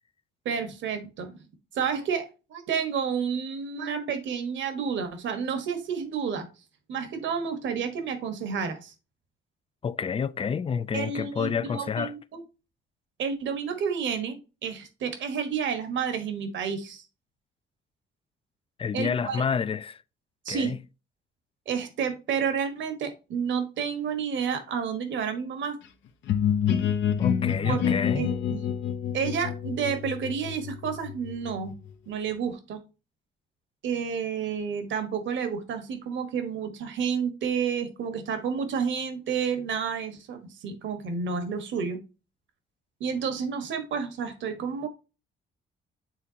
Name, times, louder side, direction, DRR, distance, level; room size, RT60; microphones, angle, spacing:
voice 1, 0.4-1.4 1.7-2.2 2.5-6.5 6.9-8.9 10.9-12.4 13.2-17.0 18.9-19.4 20.4-20.7 21.7-25.8 27.6-27.8 28.1-28.7 29.1-31.7 32.1-32.8 33.8-42.0 43.0-44.9, right 6 dB, 70° right, 1.4 m, -30 dB
voice 2, 9.8-12.1 18.8-20.0 20.5-20.8 27.2-28.3, left 6 dB, 30° left, 0.4 m, -29 dB
sound 1, 26.3-31.9, left 8 dB, 70° left, 0.8 m, -28 dB
9.0 x 3.7 x 2.8 m
cardioid pair, 90°, 20 cm